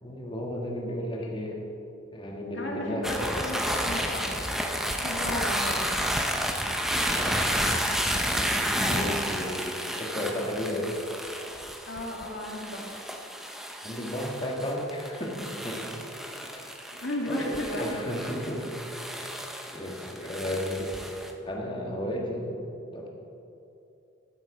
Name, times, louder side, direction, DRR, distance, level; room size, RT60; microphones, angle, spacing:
voice 1, 0.0-1.6 2.1-3.1 7.1-7.5 8.6-10.9 13.8-16.0 16.4-16.8 17.3-18.8 19.2-19.4 19.7-21.1 21.4-22.6 22.9-23.1, left 1 dB, 25° left, -1 dB, 1.4 m, -34 dB
voice 2, 0.9-1.3 2.5-4.4 4.9-5.9 8.7-9.2 11.9-12.9 16.9-18.0, left 1 dB, 65° left, -1 dB, 2.0 m, -35 dB
sound 1, 3.0-21.3, equal, ahead, 0.6 m, -31 dB
12.0 x 8.6 x 4.8 m, 2.8 s
head